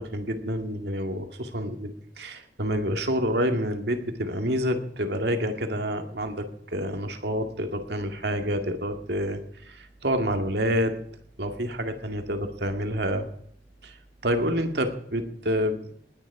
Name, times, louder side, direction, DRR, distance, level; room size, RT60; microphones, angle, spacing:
voice 1, 0.0-6.5 6.7-9.4 9.7-10.9 11.4-13.3 13.8-13.9 14.2-15.9, equal, 70° right, 6 dB, 2.2 m, -28 dB
19.5 x 10.0 x 4.9 m, 0.66 s
head